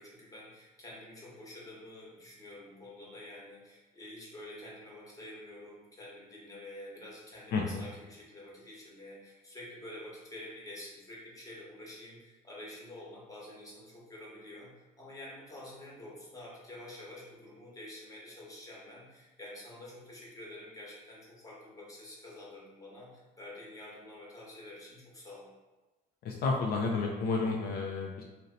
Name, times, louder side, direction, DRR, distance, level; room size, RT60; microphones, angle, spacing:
voice 1, 0.0-25.5, left 1 dB, 20° left, -5 dB, 1.0 m, -48 dB
voice 2, 7.5-7.8 26.2-28.2, left 4 dB, 70° left, 0 dB, 0.4 m, -31 dB
2.7 x 2.1 x 3.8 m, 1.2 s
cardioid pair, 110°, 17 cm